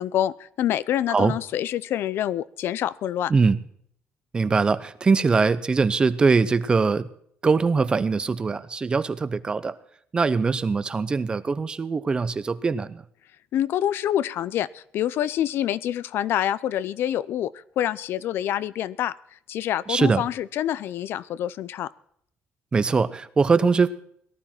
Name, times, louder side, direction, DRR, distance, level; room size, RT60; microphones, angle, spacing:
voice 1, 0.0-3.3 13.5-19.1 19.5-21.9, left 11 dB, 65° left, 19 dB, 0.5 m, -26 dB
voice 2, 4.3-7.1 7.4-9.8 10.1-13.0 19.9-20.2 22.7-23.9, right 4 dB, 20° right, 16 dB, 0.7 m, -22 dB
18.5 x 12.5 x 4.4 m, 0.65 s
cardioid pair, 165°, 4 cm